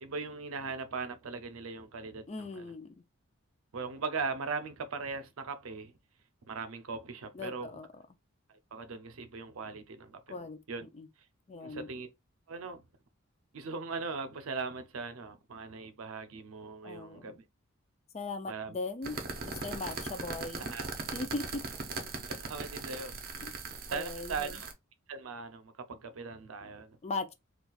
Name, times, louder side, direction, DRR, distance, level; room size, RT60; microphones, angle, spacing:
voice 1, 0.0-2.7 3.7-5.9 6.5-7.7 8.7-10.9 11.6-12.1 12.5-12.8 13.5-17.4 18.5-18.8 20.6-20.9 22.3-23.2 23.9-24.7 25.1-27.0, right 4 dB, 80° right, 0.6 m, -39 dB
voice 2, 2.3-2.9 7.3-8.0 10.3-10.6 10.9-11.1 11.5-11.9 16.8-17.4 18.1-19.2 19.5-20.7 21.1-21.6 23.4-23.6 23.9-24.6 27.0-27.3, left 3 dB, 30° left, 0.4 m, -39 dB
sound 1, 19.0-24.7, right 3 dB, 45° right, 0.7 m, -39 dB
4.1 x 2.3 x 2.3 m
head